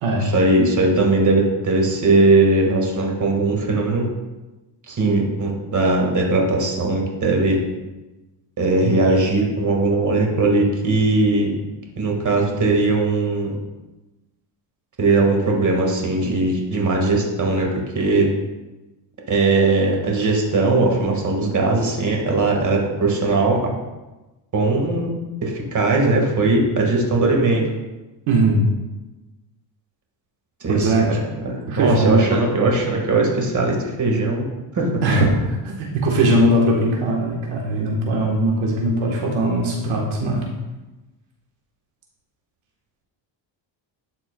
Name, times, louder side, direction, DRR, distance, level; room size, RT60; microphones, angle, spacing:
voice 1, 0.2-4.1 4.9-7.6 8.6-11.6 12.0-13.6 15.0-17.7 18.0-18.3 19.3-23.7 24.5-25.1 25.4-27.6 30.6-34.5 34.7-34.9, right 2 dB, 40° right, 0 dB, 1.7 m, -19 dB
voice 2, 28.3-28.6 30.7-31.0 31.7-32.4 35.0-40.4, right 1 dB, 80° right, -1 dB, 1.3 m, -20 dB
11.5 x 4.3 x 2.2 m, 1.1 s
cardioid pair, 90°, 47 cm